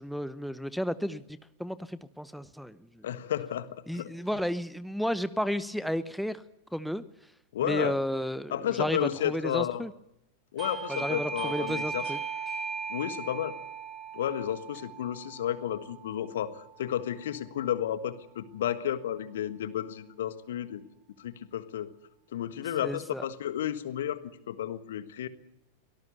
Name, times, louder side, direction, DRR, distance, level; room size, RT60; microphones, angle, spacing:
voice 1, 0.0-3.0 3.9-6.4 6.7-7.0 7.6-9.9 10.9-12.2 22.8-23.2, equal, ahead, 14 dB, 0.9 m, -33 dB
voice 2, 3.0-4.1 7.5-7.9 8.5-9.8 10.5-12.0 12.9-13.6 14.1-20.8 21.2-21.9 22.3-25.3, left 10 dB, 60° left, 13 dB, 1.5 m, -32 dB
Doorbell, 10.6-17.1, right 5 dB, 20° right, 6.9 m, -38 dB
24.5 x 18.5 x 7.1 m, 0.83 s
figure-of-eight pair, 90°, 0 cm